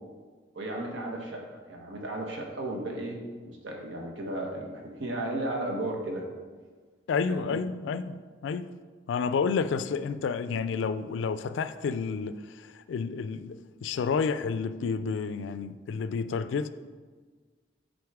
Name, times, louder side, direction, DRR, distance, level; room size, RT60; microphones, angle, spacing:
voice 1, 0.5-6.2 7.3-7.6, right 1 dB, 85° right, 1.0 m, -35 dB
voice 2, 7.1-8.7 9.1-16.7, left 5 dB, 80° left, 0.3 m, -30 dB
7.8 x 4.0 x 3.6 m
head